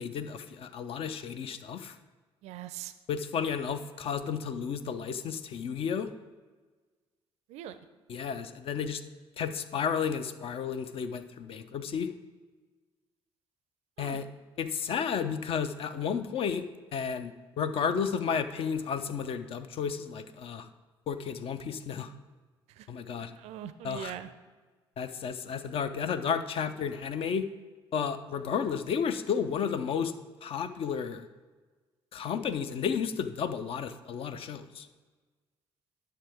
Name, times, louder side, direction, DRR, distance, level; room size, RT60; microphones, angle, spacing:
voice 1, 0.0-1.9 3.1-6.1 8.1-9.0 9.4-12.1 14.0-14.2 14.6-16.6 16.9-20.7 21.1-22.1 22.9-23.3 23.8-24.1 25.0-27.5 27.9-30.1 30.4-31.3 32.1-34.9, left 7 dB, 45° left, 10 dB, 0.5 m, -32 dB
voice 2, 2.4-2.9 7.5-7.8 14.0-14.2 22.7-22.9 23.4-24.3, right 11 dB, 55° right, 13 dB, 0.4 m, -42 dB
10.0 x 6.8 x 3.4 m, 1.4 s
figure-of-eight pair, 45°, 13 cm